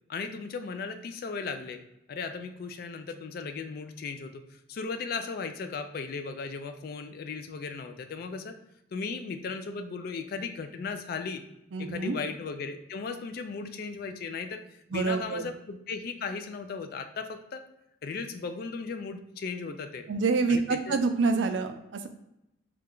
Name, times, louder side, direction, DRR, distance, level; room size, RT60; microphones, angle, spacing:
voice 1, 0.1-1.8 2.1-8.6 8.9-11.4 11.8-14.6 14.9-17.6 18.0-20.1 20.5-21.0, left 4 dB, 50° left, 8 dB, 0.3 m, -36 dB
voice 2, 11.7-12.2 14.9-15.5 20.1-22.1, right 4 dB, 70° right, 7 dB, 0.4 m, -27 dB
3.1 x 2.2 x 3.7 m, 0.86 s
head